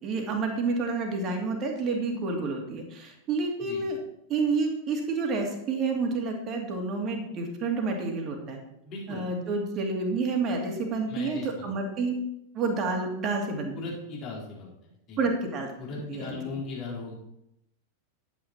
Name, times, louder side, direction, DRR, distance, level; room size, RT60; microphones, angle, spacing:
voice 1, 0.0-4.0 4.3-8.6 9.1-12.1 12.5-13.7 15.2-15.7 16.1-16.4, right 3 dB, 30° right, 2 dB, 2.5 m, -29 dB
voice 2, 8.8-9.2 11.1-11.7 13.7-14.7 15.1-15.2 15.8-17.1, left 3 dB, 35° left, -3 dB, 4.1 m, -37 dB
10.5 x 9.3 x 4.5 m, 0.81 s
figure-of-eight pair, 90°, 0 cm